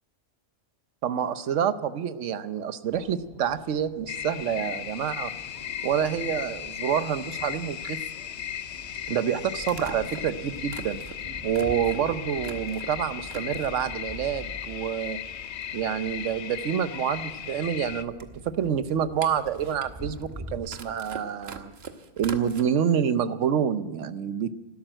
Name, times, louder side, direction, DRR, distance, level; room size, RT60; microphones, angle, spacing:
voice 1, 1.0-5.3 5.8-8.0 9.1-11.0 11.4-15.2 15.7-18.1 18.4-21.7 22.2-24.5, right 8 dB, 80° right, 13 dB, 1.1 m, -27 dB
sound 1, 2.9-20.6, equal, 20° right, 2.2 m, -46 dB
sound 2, 4.1-18.0, left 9 dB, 65° left, 0.9 m, -37 dB
sound 3, 6.8-6.9 8.7-8.8 9.6-12.9 13.2-13.9 14.4-15.1 15.3-15.4 15.6-22.6, right 5 dB, 60° right, 1.2 m, -43 dB
12.5 x 12.0 x 8.8 m, 1.2 s
omnidirectional pair, 1.2 m